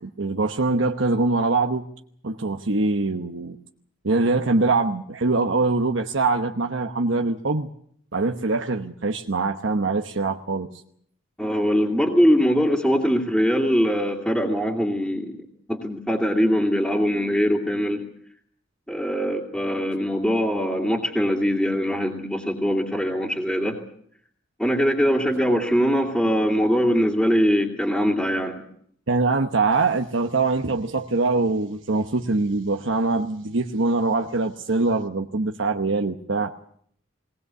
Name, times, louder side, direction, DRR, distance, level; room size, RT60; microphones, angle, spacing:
voice 1, 0.0-1.8 2.2-3.6 4.0-7.7 8.1-10.7 29.1-36.5, right 3 dB, 75° right, 4 dB, 1.0 m, -23 dB
voice 2, 11.4-18.0 18.9-23.8 24.6-28.6, equal, ahead, -4 dB, 2.4 m, -22 dB
19.5 x 19.5 x 8.2 m, 0.64 s
head